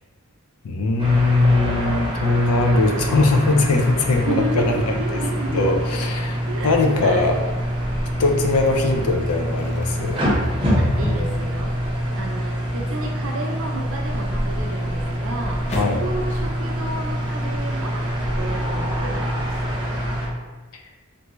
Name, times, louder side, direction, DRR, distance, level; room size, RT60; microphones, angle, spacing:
voice 1, 0.6-7.4 8.2-10.2 15.8-16.0, left 3 dB, 85° left, 3 dB, 0.5 m, -21 dB
sound 1, 1.0-20.3, equal, 25° right, 0.7 m, -25 dB
voice 2, 4.2-5.8 6.5-7.3 10.7-19.5 19.8-20.0, right 2 dB, 65° right, 1 dB, 0.6 m, -32 dB
sound 2, 7.2-7.6 8.1-16.1, left 1 dB, 30° left, 0.4 m, -41 dB
3.4 x 2.6 x 3.0 m, 1.2 s
head